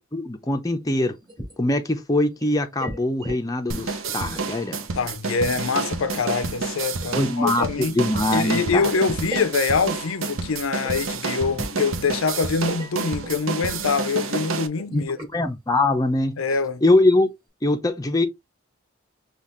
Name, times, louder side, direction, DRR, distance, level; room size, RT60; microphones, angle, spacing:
voice 1, 0.1-1.2 1.6-4.8 7.1-8.9 14.9-15.0 15.3-16.4 16.8-17.3 17.6-18.3, left 2 dB, 20° left, 0.6 m, -22 dB
sound 1, 1.0-1.7 2.1-3.4 3.7-4.5 4.8-8.4 8.8-10.4 10.8-11.1 11.6-12.3 12.6-13.4 13.8-13.9 14.2-14.4 14.8-15.3 15.8-15.9 16.3-16.6 17.0-17.1, equal, 20° right, 2.7 m, -39 dB
sound 2, 3.7-14.7, right 4 dB, 85° right, 0.7 m, -29 dB
voice 2, 4.9-7.9 8.3-15.2 16.4-16.8, left 4 dB, 90° left, 0.6 m, -24 dB
5.5 x 2.4 x 3.1 m
head